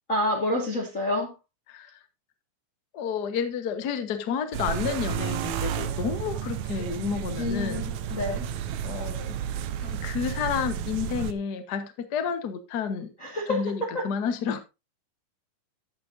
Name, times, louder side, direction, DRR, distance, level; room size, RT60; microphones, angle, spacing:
voice 1, 0.1-1.3 7.4-8.5 13.2-14.1, left 1 dB, 30° left, 1.5 m, -28 dB
voice 2, 2.9-7.9 8.8-9.3 9.8-13.1 13.5-14.6, left 7 dB, 75° left, 0.9 m, -30 dB
sound 1, 4.5-11.3, right 9 dB, 70° right, 1.8 m, -32 dB
13.0 x 8.9 x 2.6 m
omnidirectional pair, 3.9 m